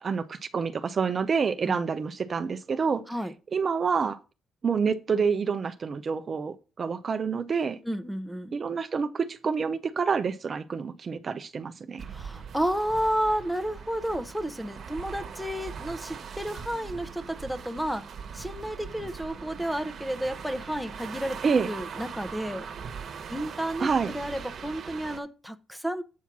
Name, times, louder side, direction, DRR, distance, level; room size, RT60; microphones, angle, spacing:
voice 1, 0.0-3.0 3.5-4.2 4.6-7.8 8.5-12.1 21.4-21.7 23.8-24.1, right 5 dB, 45° right, 0.6 m, -27 dB
voice 2, 7.8-8.5 12.1-18.1 18.3-21.4 21.7-22.7 23.3-26.0, equal, ahead, 0.8 m, -31 dB
sound 1, 12.0-25.2, right 6 dB, 60° right, 1.2 m, -41 dB
8.3 x 4.4 x 5.9 m
cardioid pair, 90°, 0 cm